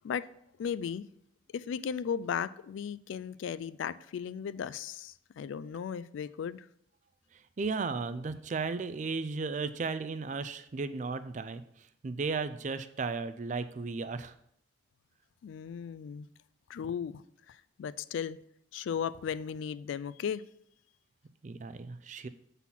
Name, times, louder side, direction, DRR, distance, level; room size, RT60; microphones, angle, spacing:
voice 1, 0.6-1.0 1.5-6.6 15.4-16.3 16.7-17.2 17.5-18.4 18.7-20.4, left 7 dB, 75° left, 0.3 m, -36 dB
voice 2, 7.3-14.3 21.4-22.3, right 4 dB, 40° right, 0.4 m, -35 dB
7.4 x 4.1 x 5.6 m
head